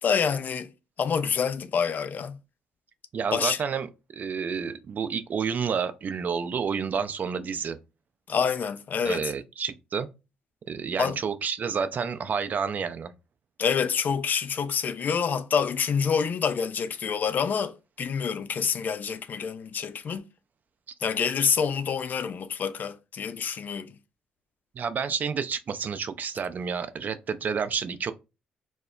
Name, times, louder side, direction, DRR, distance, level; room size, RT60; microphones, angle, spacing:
voice 1, 0.0-0.7 1.0-2.4 3.3-3.6 8.3-9.3 11.0-11.2 13.6-20.2 21.0-23.9, left 6 dB, 50° left, 0.3 m, -27 dB
voice 2, 3.1-7.8 9.0-10.1 10.7-13.1 24.8-28.1, right 6 dB, 45° right, 0.4 m, -30 dB
2.1 x 2.0 x 3.7 m
hypercardioid pair, 50°, 4 cm